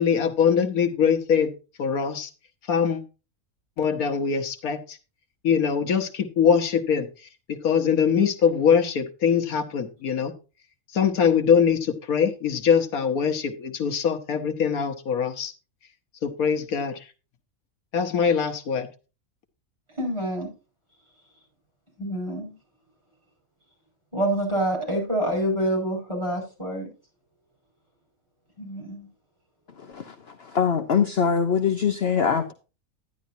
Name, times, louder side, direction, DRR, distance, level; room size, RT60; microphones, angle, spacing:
voice 1, 0.0-1.5 1.8-2.3 2.7-3.0 3.8-5.0 5.4-7.1 7.5-10.3 10.9-15.5 16.2-17.0 17.9-18.9, left 7 dB, 85° left, 1.5 m, -22 dB
voice 2, 20.0-20.5 22.0-22.5 24.1-26.9 28.6-29.1, right 1 dB, 20° right, 5.6 m, -27 dB
voice 3, 29.8-32.5, left 6 dB, 50° left, 1.0 m, -23 dB
11.0 x 10.5 x 2.7 m
omnidirectional pair, 1.5 m